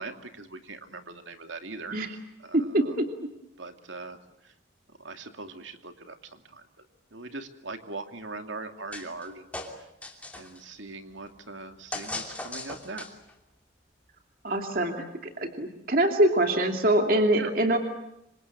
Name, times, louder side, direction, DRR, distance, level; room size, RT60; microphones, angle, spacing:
voice 1, 0.0-2.0 2.4-3.0 3.6-4.5 5.0-6.7 7.1-9.5 9.8-9.9 10.3-13.1 17.4-17.5, right 3 dB, 80° right, 6 dB, 2.6 m, -41 dB
voice 2, 2.5-3.1 14.4-17.8, right 1 dB, 45° right, 4 dB, 2.7 m, -24 dB
sound 1, 8.9-9.3 9.5-10.6 11.9-13.3, left 2 dB, 5° left, 2.9 m, -38 dB
27.5 x 25.5 x 7.6 m, 0.86 s
head